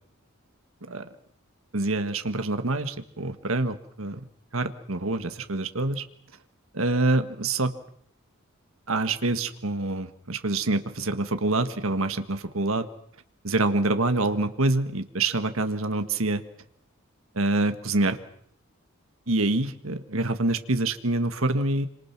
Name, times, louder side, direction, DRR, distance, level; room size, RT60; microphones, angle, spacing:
voice 1, 1.7-4.2 4.5-6.0 6.7-7.7 8.9-12.9 13.4-16.4 17.3-18.2 19.3-21.9, right 2 dB, 75° right, 9 dB, 1.7 m, -26 dB
27.0 x 26.0 x 6.1 m, 0.66 s
head